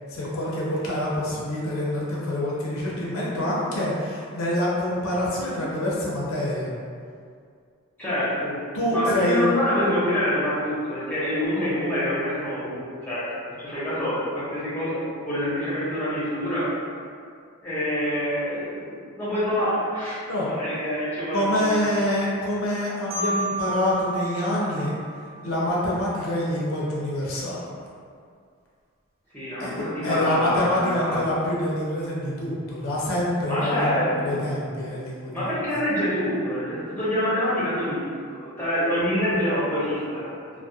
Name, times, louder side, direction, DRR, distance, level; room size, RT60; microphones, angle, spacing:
voice 1, 0.1-6.7 8.7-9.6 20.3-20.5 21.3-24.9 25.4-27.6 29.6-35.5, left 1 dB, 75° left, -5 dB, 0.5 m, -26 dB
voice 2, 8.0-8.6 8.9-12.8 13.1-13.3 13.6-15.0 15.2-16.7 17.6-20.2 20.4-21.7 29.3-31.2 33.5-34.4 35.3-38.0 38.3-40.3, equal, 10° left, -11 dB, 0.7 m, -26 dB
Marimba xylophone, 23.1-25.9, right 2 dB, 65° right, 0.6 m, -32 dB
2.3 x 2.0 x 2.6 m, 2.2 s
head